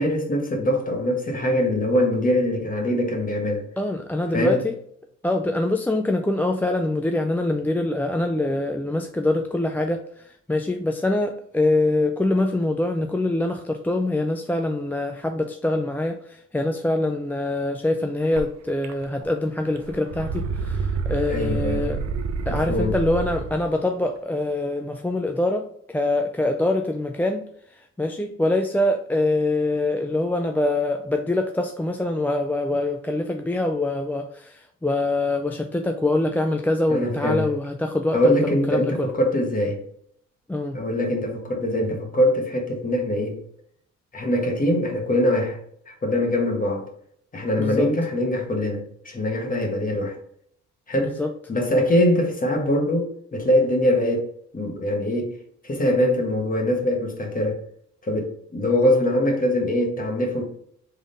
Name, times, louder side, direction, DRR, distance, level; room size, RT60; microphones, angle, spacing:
voice 1, 0.0-3.6 4.3-4.6 21.3-21.9 22.5-23.0 36.9-37.5 38.1-39.8 40.7-43.4 44.1-45.6 45.9-46.8 47.3-50.1 50.9-51.1 51.5-54.3 54.5-55.3 55.6-57.6 58.0-60.4, left 1 dB, 30° left, 1.3 m, -23 dB
voice 2, 3.8-4.8 5.2-22.0 22.5-27.4 27.7-39.1 40.5-40.8 47.6-47.9 50.9-51.3, left 2 dB, 5° left, 0.3 m, -24 dB
sound 1, 18.3-18.4 18.8-19.4 19.7-23.7, right 4 dB, 60° right, 0.7 m, -28 dB
3.6 x 3.6 x 3.9 m
cardioid pair, 90°, 30 cm